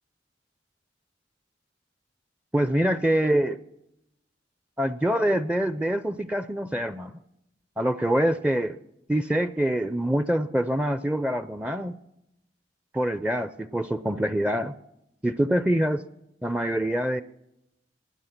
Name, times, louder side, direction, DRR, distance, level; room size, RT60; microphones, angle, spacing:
voice 1, 2.5-3.6 4.8-7.1 7.8-8.8 9.1-11.9 12.9-14.7 15.2-16.0 16.4-17.2, right 1 dB, 5° right, 13 dB, 0.4 m, -25 dB
20.0 x 9.8 x 5.9 m, 0.83 s
head